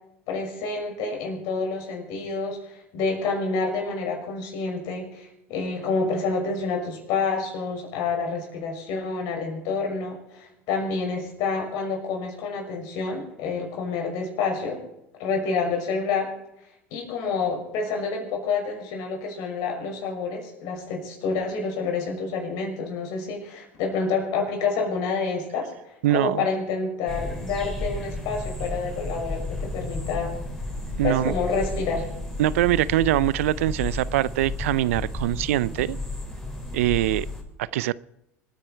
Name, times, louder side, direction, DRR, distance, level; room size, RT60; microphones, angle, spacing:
voice 1, 0.3-14.8 15.2-16.3 16.9-30.3 31.0-32.0, left 4 dB, 65° left, 5.9 m, -28 dB
voice 2, 26.0-26.5 31.0-31.3 32.4-36.0 36.7-37.3 37.6-37.9, right 14 dB, 80° right, 0.4 m, -23 dB
sound 1, 27.1-37.4, left 2 dB, 5° left, 4.2 m, -33 dB
25.5 x 10.0 x 4.5 m
hypercardioid pair, 85°, 7 cm